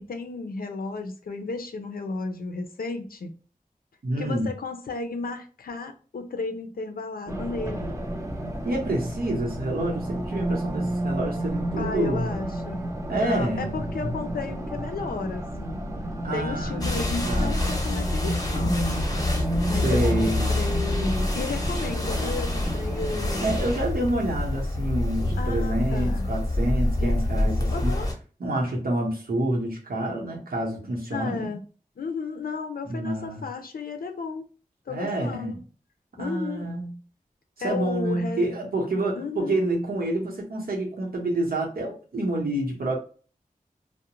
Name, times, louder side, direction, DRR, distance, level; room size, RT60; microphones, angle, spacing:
voice 1, 0.0-3.3 4.2-8.0 11.8-15.8 16.3-18.9 19.7-23.6 25.4-26.3 27.0-28.1 31.1-31.6 32.0-34.5 34.9-35.6 36.2-36.7 37.6-38.5 39.2-39.7, left 4 dB, 90° left, 0.4 m, -33 dB
voice 2, 4.0-4.5 8.6-12.3 13.1-13.8 16.2-17.8 19.7-20.6 23.4-28.0 28.4-31.5 32.9-33.4 34.9-35.6 36.2-36.9 37.6-43.0, right 1 dB, 85° right, 0.8 m, -28 dB
Race car auto racing, 7.3-23.9, right 1 dB, 20° right, 0.6 m, -31 dB
sound 1, 16.8-28.1, left 1 dB, 25° left, 0.7 m, -26 dB
2.3 x 2.0 x 2.9 m
wide cardioid pair, 70°, 15 cm